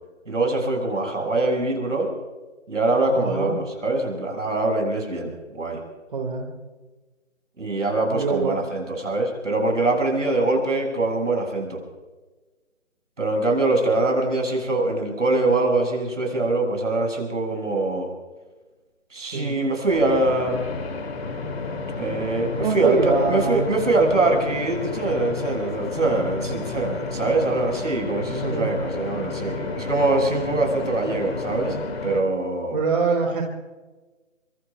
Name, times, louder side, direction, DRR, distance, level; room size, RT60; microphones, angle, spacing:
voice 1, 0.3-2.1 2.7-5.8 7.6-11.8 13.2-18.1 19.1-20.6 22.0-31.8 32.0-32.8, right 2 dB, 75° right, 1 dB, 6.8 m, -23 dB
voice 2, 3.1-3.5 6.1-6.5 8.1-8.6 19.3-19.6 22.6-23.7 28.5-28.7 32.7-33.4, right 4 dB, 40° right, 1 dB, 2.4 m, -24 dB
sound 1, 19.9-32.2, left 4 dB, 50° left, 2.4 m, -31 dB
24.5 x 24.5 x 2.4 m, 1.2 s
figure-of-eight pair, 160°, 38 cm